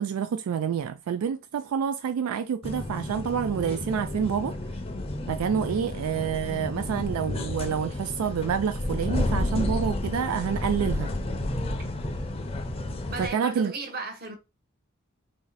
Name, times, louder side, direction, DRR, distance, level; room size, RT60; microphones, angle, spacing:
voice 1, 0.0-4.5 5.3-11.1 13.2-13.7, right 7 dB, 80° right, 0.3 m, -28 dB
sound 1, 2.6-13.3, left 1 dB, 25° left, 0.5 m, -31 dB
voice 2, 13.1-14.4, right 3 dB, 45° right, 0.8 m, -35 dB
3.1 x 2.7 x 3.9 m
head